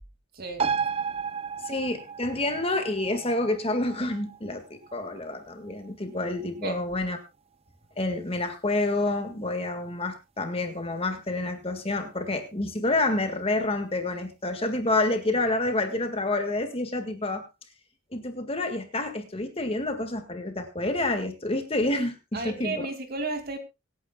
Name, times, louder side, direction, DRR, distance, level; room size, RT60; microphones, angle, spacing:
voice 1, 0.3-0.7 6.6-6.8 22.3-23.6, right 3 dB, 45° right, 7 dB, 2.4 m, -33 dB
sound 1, 0.6-7.6 7.9-8.0, right 6 dB, 30° right, 0.6 m, -34 dB
voice 2, 1.6-7.2 8.0-17.5 18.1-22.9, left 2 dB, 30° left, 7 dB, 1.8 m, -28 dB
25.0 x 9.5 x 2.3 m, 0.25 s
head